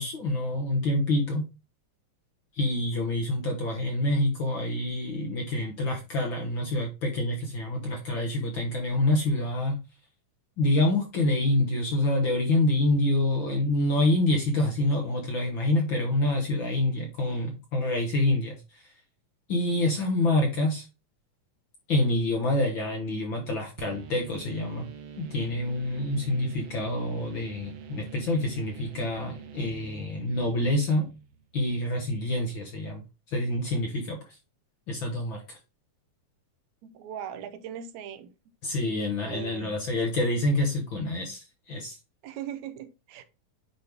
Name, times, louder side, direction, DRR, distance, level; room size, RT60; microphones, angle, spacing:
voice 1, 0.0-1.5 2.5-9.8 10.6-18.8 19.5-20.8 21.9-24.9 25.2-31.1 31.5-33.0 33.3-34.2 34.9-35.6 38.6-42.0, left 1 dB, 55° left, 1.4 m, -27 dB
sound 1, 23.8-31.5, right 7 dB, 85° right, 2.7 m, -45 dB
voice 2, 36.8-38.3 39.2-39.7 42.2-43.2, right 9 dB, 70° right, 1.9 m, -39 dB
9.6 x 3.2 x 3.4 m
omnidirectional pair, 3.7 m